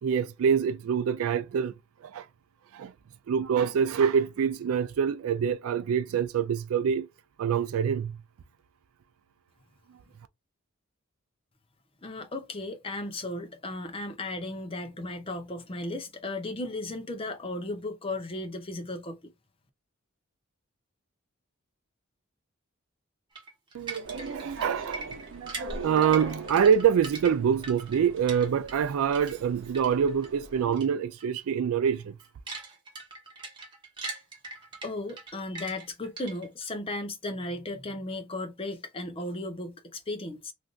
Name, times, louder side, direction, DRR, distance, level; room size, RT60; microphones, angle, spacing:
voice 1, 0.0-1.7 2.0-2.3 2.7-2.9 3.3-7.1 7.4-8.2 23.7-32.2, right 7 dB, 85° right, 0.3 m, -26 dB
voice 2, 12.0-19.3 34.8-40.5, left 2 dB, 25° left, 0.6 m, -35 dB
sound 1, 23.3-28.9 29.1-30.3 30.7-30.9 31.2-31.4 31.8-36.6, right 3 dB, 20° right, 1.0 m, -41 dB
sound 2, 24.0-30.6, right 3 dB, 65° right, 0.9 m, -41 dB
3.3 x 2.5 x 2.4 m
head